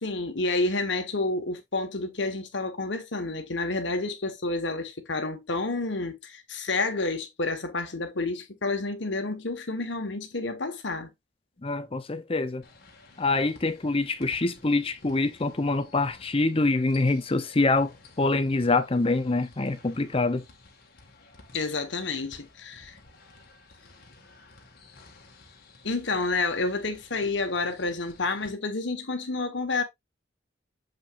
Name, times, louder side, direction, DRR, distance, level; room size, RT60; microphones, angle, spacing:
voice 1, 0.0-11.1 21.5-23.0 25.8-29.8, left 3 dB, 70° left, 1.5 m, -29 dB
voice 2, 11.6-12.6 13.2-20.4, left 2 dB, 30° left, 0.7 m, -25 dB
sound 1, 12.6-28.5, left 3 dB, 55° left, 1.9 m, -54 dB
7.4 x 5.3 x 2.6 m
head